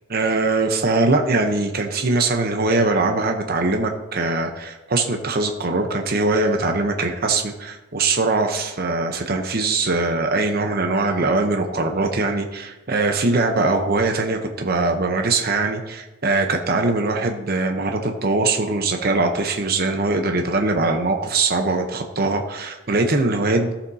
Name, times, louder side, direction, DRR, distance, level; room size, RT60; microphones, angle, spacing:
voice 1, 0.1-23.7, right 3 dB, 50° right, 4 dB, 0.8 m, -21 dB
14.0 x 7.2 x 2.8 m, 1.1 s
head